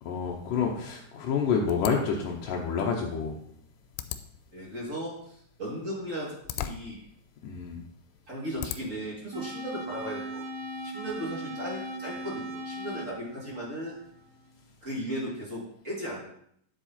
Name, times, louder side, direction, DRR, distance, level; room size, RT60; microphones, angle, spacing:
voice 1, 0.0-3.4 7.4-7.8, left 6 dB, 75° left, -1 dB, 2.0 m, -28 dB
sound 1, 1.7-9.1, left 12 dB, 90° left, 2.9 m, -42 dB
voice 2, 4.5-7.0 8.3-10.4 10.8-14.0 14.8-16.3, equal, 25° right, -4 dB, 2.0 m, -36 dB
sound 2, 9.3-14.4, right 1 dB, 45° right, 3.4 m, -38 dB
10.5 x 7.7 x 4.3 m, 0.68 s
omnidirectional pair, 5.0 m